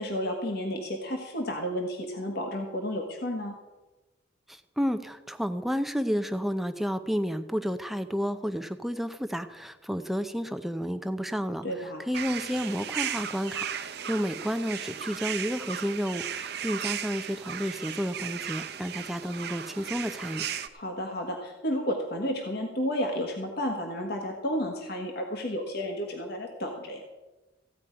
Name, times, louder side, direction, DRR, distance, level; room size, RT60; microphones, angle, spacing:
voice 1, 0.0-3.5 11.6-12.0 20.7-27.0, equal, 55° left, 2 dB, 1.4 m, -32 dB
voice 2, 4.5-20.4, equal, ahead, 9 dB, 0.6 m, -31 dB
sound 1, 12.1-20.7, right 9 dB, 55° right, 0.7 m, -36 dB
15.5 x 5.2 x 9.6 m, 1.1 s
head